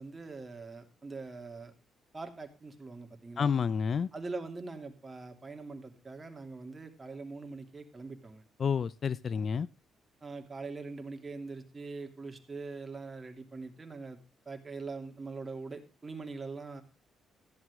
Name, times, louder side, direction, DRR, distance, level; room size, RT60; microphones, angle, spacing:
voice 1, 0.0-1.7 2.1-3.6 4.1-8.4 10.2-14.2 14.5-16.8, right 3 dB, 25° right, 5 dB, 2.8 m, -43 dB
voice 2, 3.4-4.1 8.6-9.7, left 6 dB, 50° left, 20 dB, 0.5 m, -29 dB
14.5 x 11.0 x 3.6 m, 0.30 s
cardioid pair, 90°, 0 cm